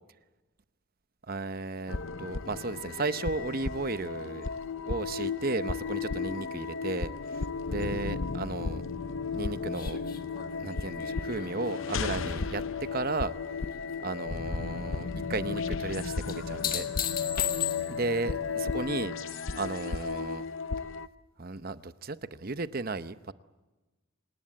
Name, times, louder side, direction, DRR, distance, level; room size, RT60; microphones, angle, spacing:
voice 1, 1.3-4.6 4.9-8.8 9.3-10.0 10.6-12.6 12.9-13.3 14.0-16.9 17.9-20.4 21.4-23.3, right 3 dB, 40° right, 0.8 m, -34 dB
sound 1, 1.9-21.1, left 5 dB, 65° left, 0.7 m, -34 dB
sound 2, 9.7-13.2 13.6-14.2 16.3-18.2 20.8-20.9, left 10 dB, 40° left, 1.5 m, -36 dB
26.5 x 19.0 x 8.9 m
head